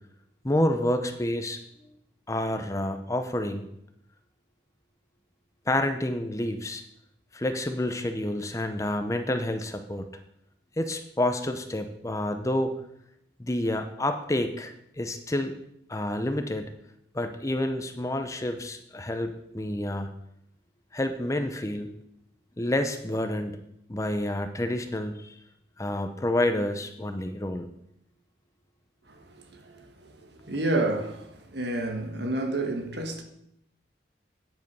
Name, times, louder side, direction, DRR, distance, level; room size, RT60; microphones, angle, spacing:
voice 1, 0.4-1.6 2.3-3.7 5.7-6.8 7.3-10.1 10.8-12.7 13.4-15.5 15.9-16.7 17.1-20.1 20.9-21.9 22.6-23.6 23.9-25.4 25.8-27.7, left 1 dB, 15° left, 0.6 m, -29 dB
voice 2, 29.1-33.2, right 2 dB, 65° right, 1.5 m, -30 dB
9.3 x 8.1 x 5.4 m
head